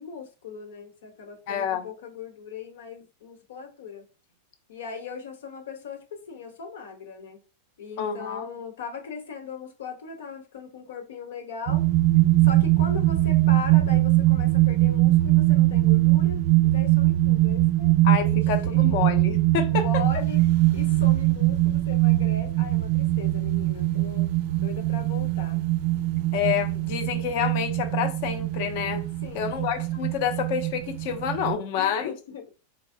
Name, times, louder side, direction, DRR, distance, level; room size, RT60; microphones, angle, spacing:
voice 1, 0.0-4.1 4.7-7.4 7.8-11.9 12.4-17.9 18.2-18.9 19.6-20.4 20.7-25.6 29.2-29.6 31.8-32.4, left 5 dB, 85° left, 1.0 m, -39 dB
voice 2, 1.5-1.9 8.0-8.4 18.0-19.9 26.3-29.0 29.3-32.1, left 8 dB, 55° left, 0.7 m, -28 dB
sound 1, 11.7-31.6, right 16 dB, 55° right, 0.3 m, -22 dB
4.0 x 3.1 x 2.7 m
supercardioid pair, 145°, 0 cm